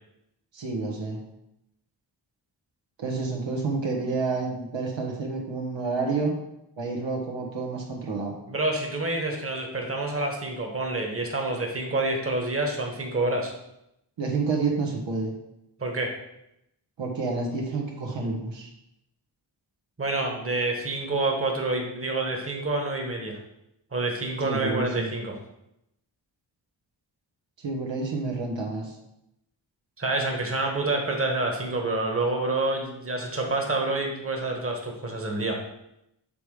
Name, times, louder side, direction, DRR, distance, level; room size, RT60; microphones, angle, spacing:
voice 1, 0.5-1.2 3.0-6.3 6.8-8.3 14.2-15.3 17.0-18.7 24.4-25.1 27.6-28.9, right 3 dB, 85° right, -1 dB, 1.3 m, -29 dB
voice 2, 8.5-13.5 15.8-16.1 20.0-23.4 23.9-25.4 30.0-35.6, right 2 dB, 30° right, 2 dB, 1.4 m, -28 dB
6.9 x 3.3 x 4.9 m, 0.84 s
cardioid pair, 60°, 43 cm